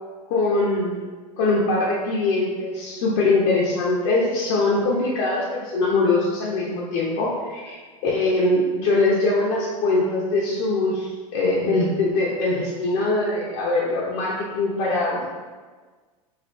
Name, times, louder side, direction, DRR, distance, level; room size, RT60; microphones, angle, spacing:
voice 1, 0.3-1.0 1.4-15.2, left 2 dB, 55° left, -6 dB, 0.7 m, -22 dB
3.3 x 2.5 x 3.0 m, 1.4 s
hypercardioid pair, 90°, 19 cm